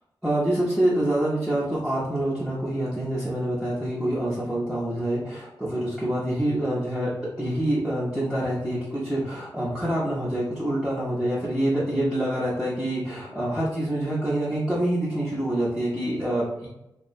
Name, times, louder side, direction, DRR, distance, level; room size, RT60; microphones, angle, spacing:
voice 1, 0.2-16.7, right 1 dB, 5° right, -8 dB, 0.8 m, -26 dB
2.3 x 2.1 x 2.5 m, 0.89 s
cardioid pair, 45°, 9 cm